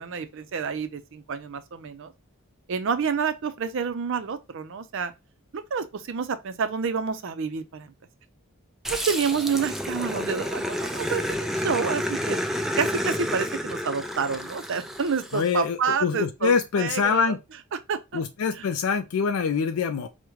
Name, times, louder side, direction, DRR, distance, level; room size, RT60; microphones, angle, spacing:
voice 1, 0.0-2.1 2.7-5.1 5.5-7.9 8.9-12.4 12.8-17.4 17.9-18.2, right 6 dB, 65° right, 0.5 m, -28 dB
Growling, 8.8-15.5, equal, ahead, 0.4 m, -30 dB
voice 2, 15.3-17.4 18.1-20.1, left 6 dB, 85° left, 0.4 m, -25 dB
4.9 x 2.1 x 3.0 m
head